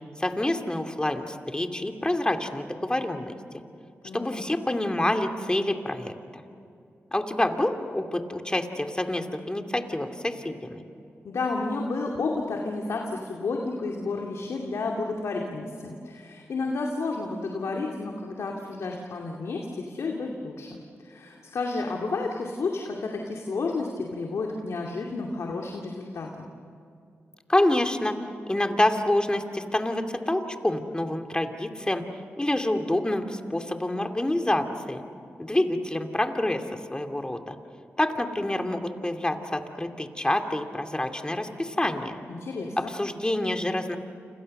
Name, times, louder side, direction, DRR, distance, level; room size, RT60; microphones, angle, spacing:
voice 1, 0.2-3.3 4.1-6.4 7.1-10.8 27.5-28.2 28.5-32.0 32.4-35.0 35.4-37.6 38.0-42.2 42.8-44.0, left 1 dB, 15° left, 5 dB, 2.6 m, -27 dB
voice 2, 4.0-4.5 11.2-26.5 42.3-42.9, left 3 dB, 75° left, 0 dB, 2.5 m, -31 dB
29.5 x 27.0 x 6.7 m, 2.5 s
cardioid pair, 55°, 5 cm